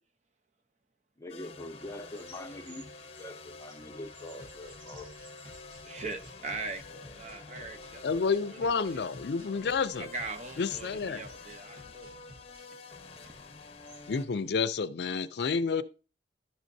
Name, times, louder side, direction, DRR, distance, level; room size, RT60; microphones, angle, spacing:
voice 1, 1.2-2.9 3.2-5.1, left 1 dB, 15° left, 0.7 m, -43 dB
sound 1, 1.3-14.3, left 3 dB, 35° left, 0.9 m, -48 dB
sound 2, 2.0-14.6, right 1 dB, 85° right, 3.8 m, -60 dB
sound 3, 4.4-12.7, left 1 dB, 60° right, 1.6 m, -54 dB
voice 2, 5.8-9.0 10.0-12.1 13.2-13.3, right 3 dB, 40° right, 0.8 m, -41 dB
voice 3, 8.0-10.1 10.6-11.2 14.1-15.8, left 5 dB, 65° left, 0.4 m, -29 dB
11.5 x 6.3 x 2.7 m
head